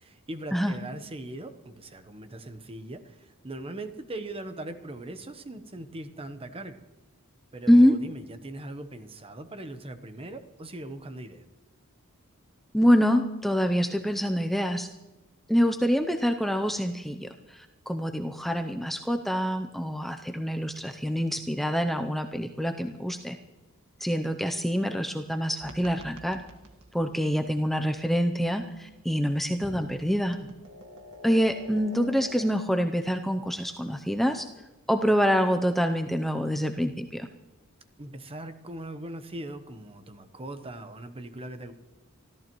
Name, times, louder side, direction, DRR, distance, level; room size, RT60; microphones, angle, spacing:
voice 1, 0.0-6.8 7.5-11.4 38.0-41.7, right 1 dB, 25° right, 9 dB, 1.0 m, -40 dB
voice 2, 12.7-14.9 15.5-23.4 24.0-26.4 26.9-30.4 31.2-34.5 34.9-37.3, equal, ahead, 5 dB, 0.6 m, -25 dB
sound 1, 25.6-32.5, equal, 80° right, 1.7 m, -47 dB
25.5 x 14.0 x 3.1 m, 1.1 s
head